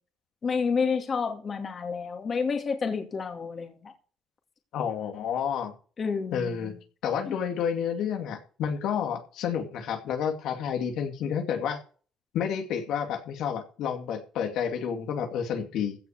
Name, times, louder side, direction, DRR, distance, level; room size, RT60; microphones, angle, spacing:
voice 1, 0.4-3.9 6.0-6.7 7.3-7.4, left 5 dB, 30° left, 2.5 m, -29 dB
voice 2, 4.7-5.7 6.3-6.7 7.0-11.8 12.3-16.0, left 7 dB, 70° left, 2.3 m, -30 dB
16.0 x 5.8 x 7.1 m
cardioid pair, 160°, 0 cm